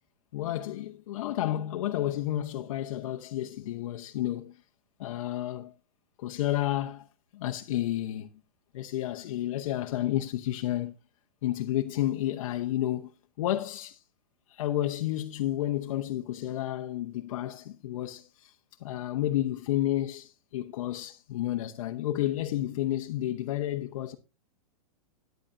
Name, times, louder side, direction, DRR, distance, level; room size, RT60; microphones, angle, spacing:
voice 1, 0.3-4.5 5.0-5.7 6.2-7.1 7.3-8.3 8.7-10.9 11.4-14.0 14.5-18.5 18.8-24.2, left 13 dB, 65° left, 1.0 m, -31 dB
13.5 x 10.5 x 2.6 m
hypercardioid pair, 140°, 18 cm